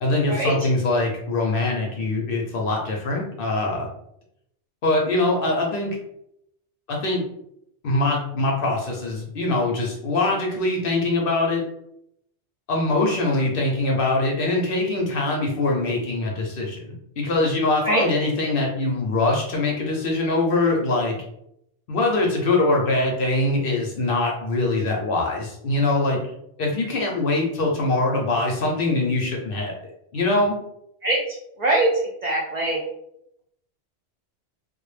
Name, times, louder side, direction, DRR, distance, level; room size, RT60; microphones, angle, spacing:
voice 1, 0.0-3.9 4.8-6.0 6.9-7.2 7.8-11.6 12.7-21.2 21.9-26.2 26.6-30.6, left 2 dB, 60° left, -1 dB, 0.6 m, -23 dB
voice 2, 31.6-31.9 32.2-32.8, right 2 dB, 65° right, -3 dB, 0.4 m, -21 dB
2.2 x 2.0 x 3.1 m, 0.77 s
omnidirectional pair, 1.2 m